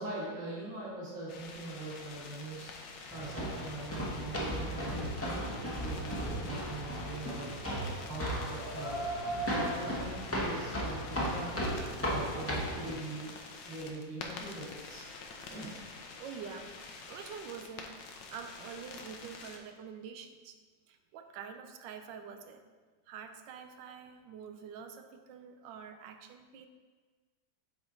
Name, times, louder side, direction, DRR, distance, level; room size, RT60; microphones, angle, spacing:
voice 1, 0.0-2.7 3.1-7.5 8.1-9.1 9.5-11.6 12.1-13.3 13.7-15.1 15.5-15.7, right 2 dB, 45° right, -6 dB, 2.2 m, -42 dB
sound 1, 1.3-19.6, left 4 dB, 85° left, 1.5 m, -48 dB
sound 2, 3.1-12.9, equal, 15° left, 0.6 m, -35 dB
voice 2, 16.2-16.8 17.1-20.6 20.9-22.6 23.1-26.7, right 6 dB, 90° right, 7 dB, 1.3 m, -46 dB
8.4 x 4.5 x 3.8 m, 1.4 s
omnidirectional pair, 1.9 m